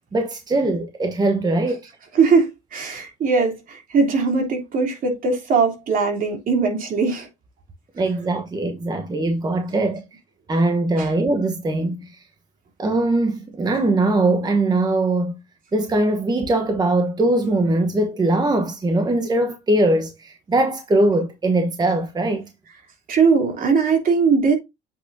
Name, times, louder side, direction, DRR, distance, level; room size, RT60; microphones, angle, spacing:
voice 1, 0.1-1.8 8.0-10.0 10.5-12.2 12.8-15.4 15.7-22.5, right 2 dB, 25° right, 1.0 m, -21 dB
voice 2, 2.1-7.3 11.0-11.1 23.1-24.6, right 5 dB, 55° right, 3.0 m, -20 dB
8.0 x 6.3 x 2.7 m
cardioid pair, 110°, 17 cm